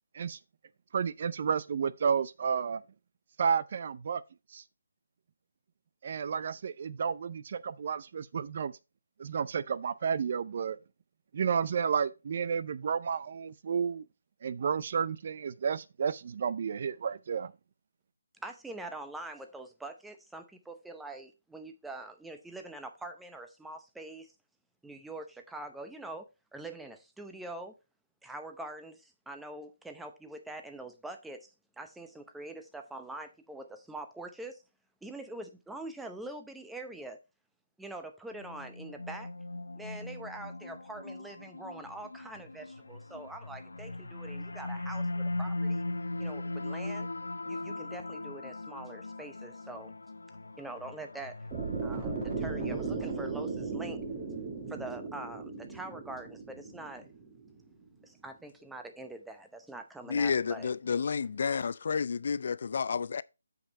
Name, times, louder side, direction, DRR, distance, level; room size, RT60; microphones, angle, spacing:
voice 1, 0.9-2.8 3.4-4.2 4.5-4.6 6.0-8.7 9.2-10.8 11.3-14.0 14.4-17.5, right 6 dB, 45° right, 0.5 m, -31 dB
voice 2, 18.4-24.3 24.8-27.8 28.2-34.6 35.0-37.2 37.8-39.3 39.8-45.8 46.2-47.1 47.4-49.9 50.6-51.5 51.8-54.0 54.7-57.1 58.0-60.7, right 2 dB, 5° right, 0.8 m, -44 dB
sound 1, 38.3-53.7, left 2 dB, 85° left, 0.6 m, -39 dB
sound 2, 51.5-57.6, right 4 dB, 20° right, 1.6 m, -37 dB
voice 3, 60.1-63.2, left 5 dB, 55° left, 0.3 m, -30 dB
7.9 x 5.3 x 4.1 m
figure-of-eight pair, 155°, 0 cm